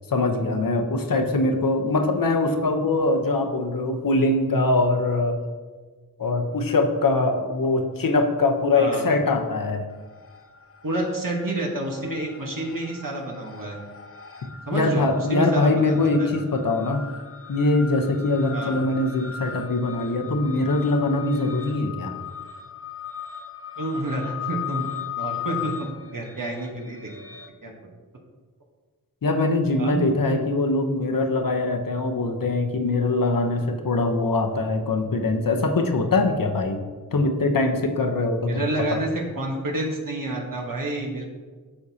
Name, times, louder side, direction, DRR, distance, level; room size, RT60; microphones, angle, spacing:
voice 1, 0.1-5.4 6.2-9.9 14.7-17.0 17.5-22.1 29.2-36.8 37.1-38.6 38.9-39.0, left 2 dB, 65° left, 4 dB, 0.9 m, -22 dB
voice 2, 8.7-9.1 10.8-13.8 14.7-16.3 18.5-18.8 23.8-24.9 25.1-27.1 27.6-27.9 29.8-30.0 30.3-30.4 38.4-41.2, right 2 dB, 65° right, -1 dB, 1.3 m, -29 dB
sound 1, 9.9-10.6 10.9-27.5, left 9 dB, 40° left, 0.7 m, -38 dB
9.6 x 6.4 x 2.8 m, 1.4 s
wide cardioid pair, 55°, 36 cm